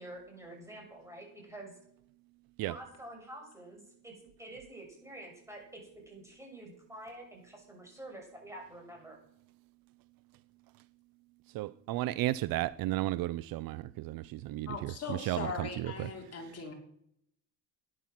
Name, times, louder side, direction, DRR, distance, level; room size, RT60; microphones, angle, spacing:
voice 1, 0.0-1.7 2.7-4.1 4.4-5.8 6.1-9.2, right 1 dB, 5° right, 0 dB, 6.4 m, -48 dB
voice 2, 11.5-16.1, right 16 dB, 60° right, 17 dB, 0.6 m, -34 dB
voice 3, 14.7-16.7, left 4 dB, 40° left, 1 dB, 3.3 m, -39 dB
12.0 x 10.5 x 6.0 m, 0.71 s
cardioid pair, 115°, 39 cm